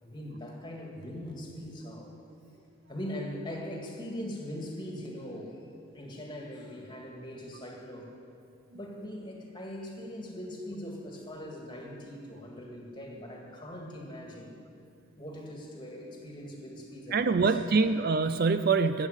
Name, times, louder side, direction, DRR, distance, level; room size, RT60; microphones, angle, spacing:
voice 1, 0.0-2.1 2.9-5.7 5.9-8.1 8.7-14.6 15.2-17.7, equal, 20° left, 0 dB, 2.1 m, -41 dB
voice 2, 17.1-19.1, right 4 dB, 45° right, 10 dB, 0.4 m, -25 dB
19.5 x 8.8 x 8.0 m, 2.6 s
head